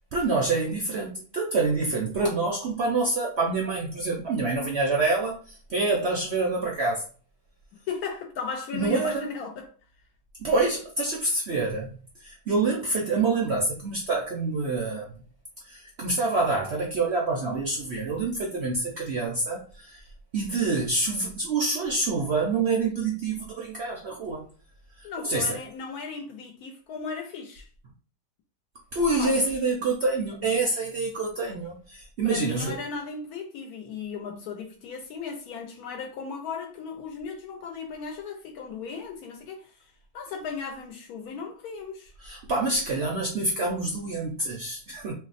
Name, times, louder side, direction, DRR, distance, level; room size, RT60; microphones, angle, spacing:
voice 1, 0.1-5.4 5.7-7.0 8.7-9.2 10.4-11.9 12.2-15.1 15.7-20.0 20.3-24.5 25.0-25.6 28.9-32.8 42.2-45.1, right 3 dB, 60° right, 0.7 m, -26 dB
voice 2, 7.9-9.7 25.0-27.7 29.1-29.5 32.2-42.1, left 5 dB, 75° left, 1.0 m, -36 dB
2.7 x 2.0 x 3.9 m
omnidirectional pair, 1.7 m